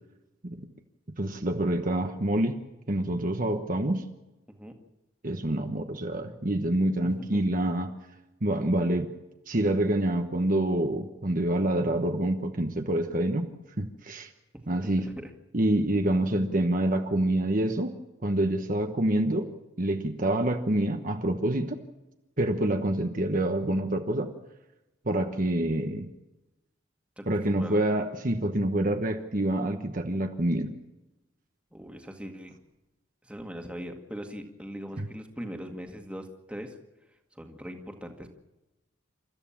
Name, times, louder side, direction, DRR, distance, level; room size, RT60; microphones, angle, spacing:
voice 1, 1.2-2.6 2.9-4.0 5.2-7.9 8.4-9.1 9.5-13.5 13.8-14.3 14.7-15.1 15.5-17.9 18.2-19.5 19.8-21.8 22.4-24.3 25.0-26.1 27.3-30.7 35.0-35.1, right 1 dB, 40° right, 5 dB, 1.2 m, -27 dB
voice 2, 7.0-7.4 15.0-15.3 27.2-27.8 31.7-32.6 33.2-36.8 37.3-38.4, equal, 5° right, 3 dB, 1.9 m, -40 dB
29.0 x 14.0 x 7.3 m, 1.0 s
head